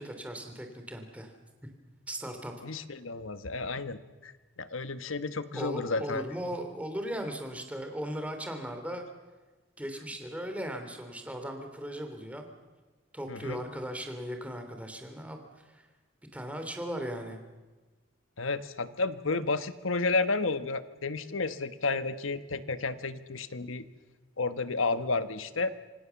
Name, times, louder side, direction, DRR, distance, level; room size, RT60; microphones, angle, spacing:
voice 1, 0.0-1.3 2.1-2.5 5.5-9.1 9.8-12.5 13.1-15.9 16.3-17.4, equal, 5° right, 5 dB, 3.1 m, -38 dB
voice 2, 2.6-4.3 4.6-6.2 13.3-13.6 18.4-23.8 24.4-25.7, left 3 dB, 90° left, 12 dB, 1.3 m, -31 dB
26.5 x 25.0 x 7.1 m, 1.2 s
head